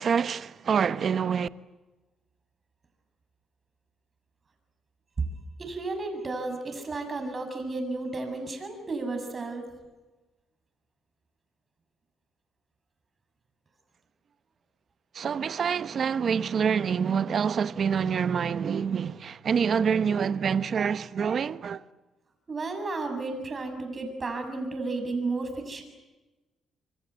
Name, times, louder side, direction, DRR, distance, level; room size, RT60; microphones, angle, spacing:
voice 1, 0.0-1.5 15.1-21.8, right 7 dB, 50° right, 0.9 m, -26 dB
voice 2, 5.6-9.7 22.5-25.8, right 3 dB, 35° right, 7.1 m, -33 dB
27.0 x 23.5 x 8.2 m
cardioid pair, 90°, 0 cm